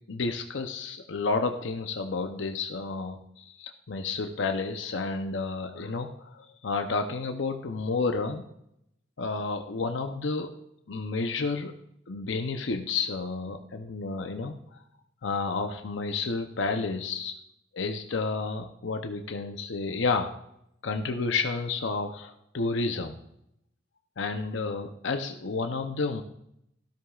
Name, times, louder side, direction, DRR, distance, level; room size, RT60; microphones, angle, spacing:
voice 1, 0.1-8.4 9.2-10.5 10.9-11.7 12.1-14.8 15.2-17.3 17.7-20.3 20.8-23.2 24.2-26.2, left 4 dB, 85° left, 5 dB, 0.7 m, -31 dB
13.0 x 12.5 x 2.4 m, 0.78 s
head